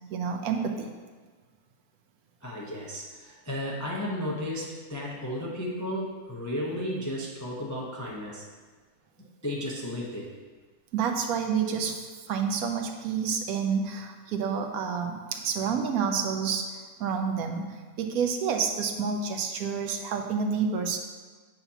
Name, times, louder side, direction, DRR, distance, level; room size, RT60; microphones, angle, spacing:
voice 1, 0.1-0.9 10.9-21.0, right 6 dB, 75° right, 4 dB, 1.1 m, -29 dB
voice 2, 2.4-8.4 9.4-10.3, left 1 dB, 20° left, -4 dB, 0.4 m, -34 dB
7.9 x 5.6 x 2.8 m, 1.4 s
omnidirectional pair, 1.6 m